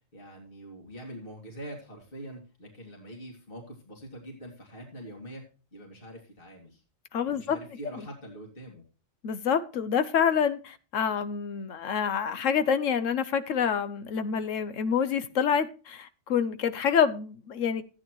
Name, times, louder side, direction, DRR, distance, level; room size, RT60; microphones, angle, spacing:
voice 1, 0.1-5.4 5.7-6.8 7.3-8.8, right 1 dB, 45° left, 2.7 m, -44 dB
voice 2, 7.1-7.6 9.2-17.8, left 7 dB, 75° left, 1.1 m, -27 dB
14.0 x 9.1 x 3.0 m
omnidirectional pair, 1.3 m